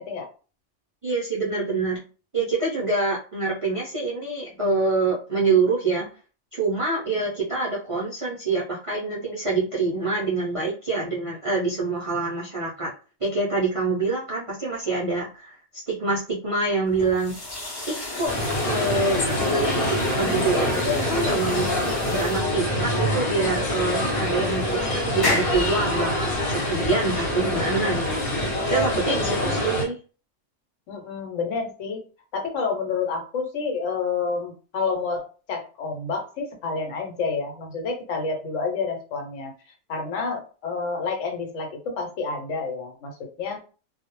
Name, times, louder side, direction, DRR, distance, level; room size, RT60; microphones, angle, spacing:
voice 1, 1.0-2.0 2.3-6.1 6.5-12.9 13.2-17.3 17.8-18.3 18.7-21.7 22.1-28.0 28.6-30.0, right 3 dB, 50° right, -6 dB, 0.4 m, -26 dB
sound 1, 16.9-29.3, left 2 dB, 35° left, 0.4 m, -33 dB
sound 2, 18.3-29.8, left 1 dB, 50° left, 0.9 m, -25 dB
voice 2, 29.2-29.6 30.9-32.0 32.3-39.5 39.9-43.6, left 4 dB, 75° left, 2 dB, 1.0 m, -29 dB
2.2 x 2.0 x 3.0 m, 0.36 s
omnidirectional pair, 1.3 m